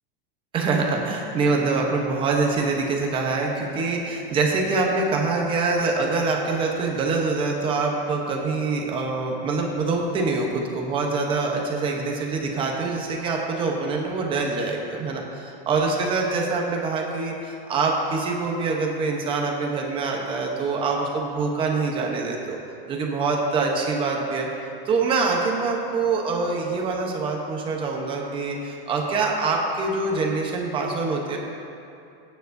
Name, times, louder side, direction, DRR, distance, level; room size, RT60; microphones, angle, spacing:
voice 1, 0.5-22.6 22.9-24.5 24.9-31.4, right 3 dB, 20° right, 0 dB, 0.9 m, -25 dB
22.0 x 9.4 x 2.7 m, 2.7 s
supercardioid pair, 175°, 29 cm